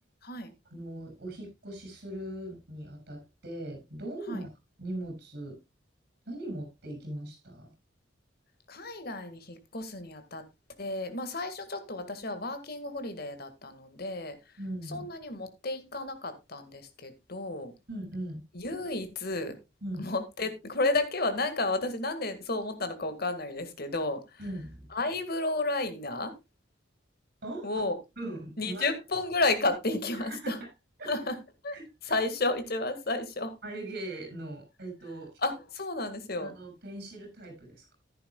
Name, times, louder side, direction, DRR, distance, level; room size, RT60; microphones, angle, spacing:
voice 1, 0.7-4.5 4.8-5.6 6.3-7.7 14.6-15.1 17.9-18.4 19.8-20.1 24.4-24.9 27.4-27.7 28.2-28.9 30.1-30.7 31.0-31.1 31.7-32.1 33.6-35.3 36.4-38.0, right 1 dB, 55° right, 6.9 m, -40 dB
voice 2, 8.7-10.4 10.8-14.4 14.9-17.7 18.5-19.6 20.0-24.4 24.9-26.3 27.6-28.0 28.6-30.6 31.1-31.4 31.6-31.8 32.0-33.5 35.4-36.5, left 2 dB, 55° left, 1.9 m, -32 dB
14.0 x 10.5 x 2.3 m
head